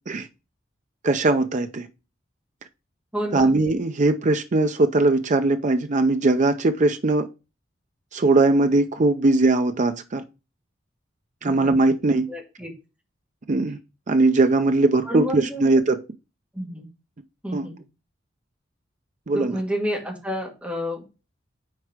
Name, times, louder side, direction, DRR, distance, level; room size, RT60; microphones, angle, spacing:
voice 1, 1.0-1.9 3.3-7.3 8.1-10.2 11.4-12.3 13.5-13.8 14.1-16.0 17.5-17.7 19.3-19.6, right 2 dB, 40° right, 0.5 m, -20 dB
voice 2, 3.1-3.5 11.4-11.7 12.3-12.7 15.0-15.7 16.5-16.9 17.4-17.8 19.3-21.1, equal, 5° right, 2.0 m, -29 dB
6.5 x 4.6 x 4.9 m
head